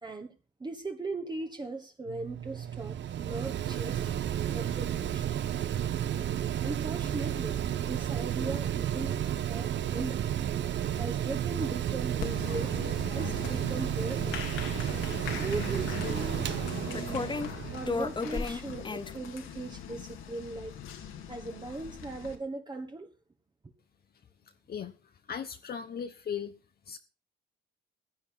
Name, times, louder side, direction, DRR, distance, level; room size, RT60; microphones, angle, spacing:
voice 1, 0.0-4.1 4.5-5.3 6.6-10.2 11.0-12.7 13.1-14.8 15.4-17.4 17.7-20.8 21.3-23.1, right 3 dB, 20° right, 1.4 m, -39 dB
Mechanical fan, 2.1-18.4, right 10 dB, 65° right, 1.0 m, -32 dB
Applause, 12.2-22.3, left 8 dB, 85° left, 2.4 m, -41 dB
sound 1, 13.1-13.2 13.6-14.6 15.8-15.9 16.9-17.5 17.9-19.1, left 4 dB, 25° left, 1.0 m, -34 dB
voice 2, 24.7-26.6 26.9-27.0, left 7 dB, 50° left, 1.0 m, -38 dB
15.5 x 8.8 x 5.7 m
cardioid pair, 90°, 20 cm